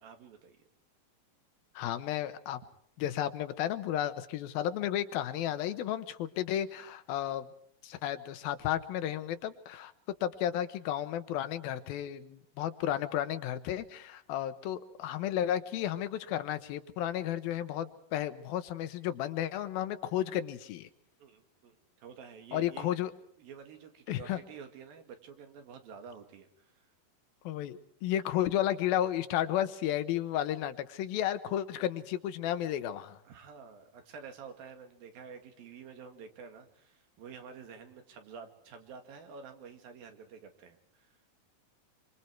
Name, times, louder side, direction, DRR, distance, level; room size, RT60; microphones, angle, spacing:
voice 1, 0.0-0.6 21.2-22.9 23.4-26.9 33.3-41.2, right 6 dB, 80° right, 6 dB, 3.9 m, -49 dB
voice 2, 1.8-2.6 3.0-7.5 7.8-9.9 10.2-20.9 22.5-23.1 24.1-24.4 27.4-33.2, left 11 dB, 85° left, 11 dB, 2.9 m, -33 dB
26.0 x 25.0 x 4.6 m, 0.68 s
omnidirectional pair, 4.1 m